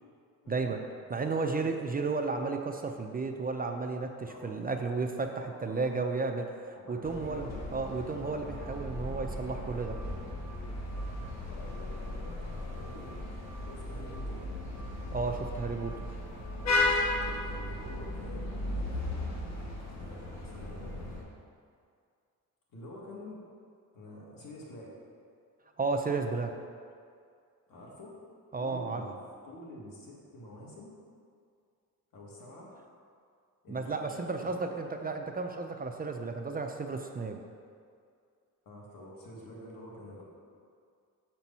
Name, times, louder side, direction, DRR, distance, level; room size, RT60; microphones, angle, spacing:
voice 1, 0.5-0.8 1.1-10.0 15.1-15.9 25.8-26.5 28.5-29.0 33.7-37.4, right 4 dB, 25° right, 4 dB, 0.4 m, -33 dB
voice 2, 1.2-1.7 4.3-4.6 5.4-5.9 6.8-7.6 11.5-14.5 16.7-19.2 19.9-21.1 22.7-23.4 23.9-24.9 27.7-28.2 28.6-29.2 29.4-30.9 32.1-32.7 33.6-35.1 38.7-40.2, left 1 dB, 80° left, -3 dB, 1.8 m, -48 dB
sound 1, 7.0-21.2, left 2 dB, 55° left, 1.5 m, -35 dB
6.8 x 4.5 x 5.4 m, 2.3 s
cardioid pair, 110°, 34 cm